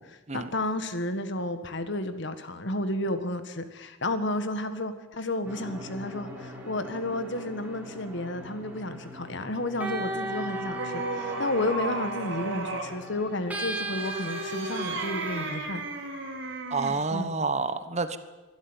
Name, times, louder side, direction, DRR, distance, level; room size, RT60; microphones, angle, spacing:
voice 1, 0.0-15.8 17.1-17.3, left 1 dB, 65° left, 10 dB, 1.6 m, -32 dB
sound 1, 5.4-15.6, right 1 dB, 10° right, 3.9 m, -38 dB
sound 2, 10.0-13.0 13.9-17.1, right 2 dB, 65° right, 3.6 m, -35 dB
voice 2, 16.7-18.2, right 4 dB, 35° right, 12 dB, 1.2 m, -28 dB
24.0 x 12.5 x 9.0 m, 1.2 s
head